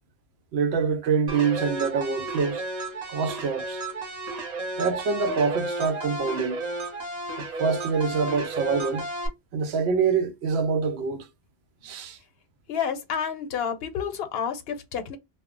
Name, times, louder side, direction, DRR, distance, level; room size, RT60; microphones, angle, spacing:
voice 1, 0.5-2.6 3.1-3.8 4.8-6.6 7.4-9.1 9.5-11.3 11.8-12.2, right 5 dB, 90° right, 0.8 m, -25 dB
sound 1, 1.3-9.3, right 2 dB, 45° right, 0.8 m, -33 dB
voice 2, 12.7-15.2, left 7 dB, 70° left, 0.8 m, -30 dB
2.1 x 2.0 x 3.6 m
omnidirectional pair, 1.0 m